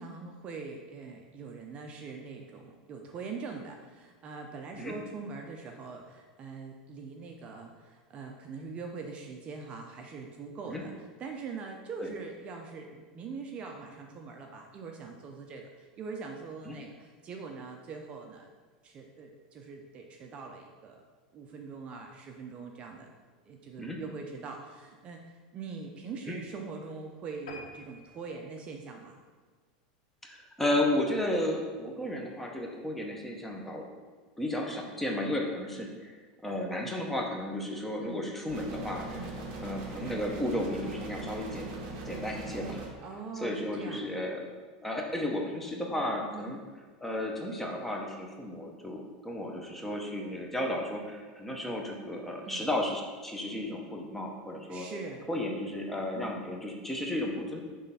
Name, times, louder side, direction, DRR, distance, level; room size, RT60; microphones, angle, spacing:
voice 1, 0.0-18.5 18.8-21.0 21.3-23.1 23.5-25.2 25.5-29.2 38.0-38.3 39.1-39.3 43.0-44.0 46.3-46.6 52.5-52.6 54.6-55.3, right 4 dB, 30° right, 2 dB, 0.5 m, -42 dB
sound 1, 27.5-30.2 30.7-30.9 31.3-31.4 31.7-31.8 32.1-32.2, left 3 dB, 90° left, 1.2 m, -50 dB
voice 2, 30.2-33.9 34.4-39.1 39.6-41.7 42.1-42.8 43.3-44.4 44.8-46.6 47.0-54.9 55.3-57.6, left 1 dB, 5° left, 0 dB, 0.8 m, -33 dB
sound 2, 38.5-42.9, right 2 dB, 45° right, 1.3 m, -40 dB
6.2 x 3.3 x 5.5 m, 1.5 s
supercardioid pair, 150°, 4 cm